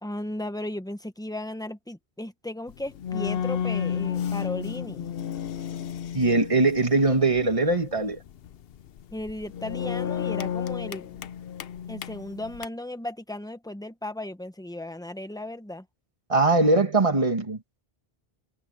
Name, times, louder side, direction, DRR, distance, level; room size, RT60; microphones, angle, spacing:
voice 1, 0.0-5.1 9.1-11.2 11.9-15.9, left 1 dB, 5° left, 1.0 m, -36 dB
sound 1, 2.7-12.7, left 8 dB, 70° left, 0.9 m, -32 dB
voice 2, 6.1-8.2 16.3-17.6, right 3 dB, 35° right, 1.5 m, -21 dB
omnidirectional pair, 1.0 m